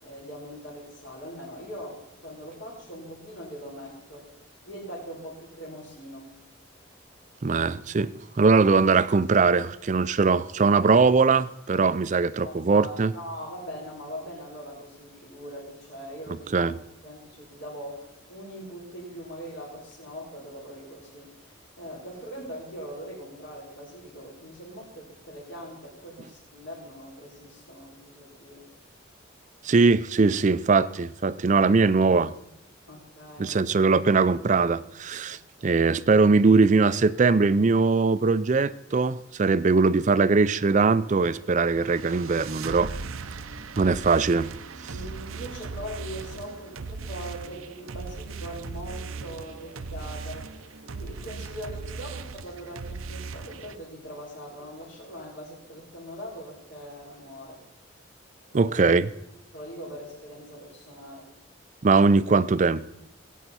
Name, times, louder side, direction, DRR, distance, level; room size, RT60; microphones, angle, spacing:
voice 1, 0.0-4.3 4.6-6.3 12.4-16.7 17.0-28.7 32.9-33.6 35.3-35.8 44.9-50.5 50.9-57.6 58.5-58.7 59.5-61.3, equal, 65° left, 3.8 m, -41 dB
voice 2, 7.4-13.1 16.5-16.7 29.6-32.3 33.4-42.9 43.8-44.5 44.8-44.9 58.5-59.1 61.8-62.8, right 4 dB, 35° right, 0.4 m, -21 dB
sound 1, 41.1-53.8, right 4 dB, 85° right, 0.7 m, -38 dB
18.5 x 9.1 x 4.2 m
head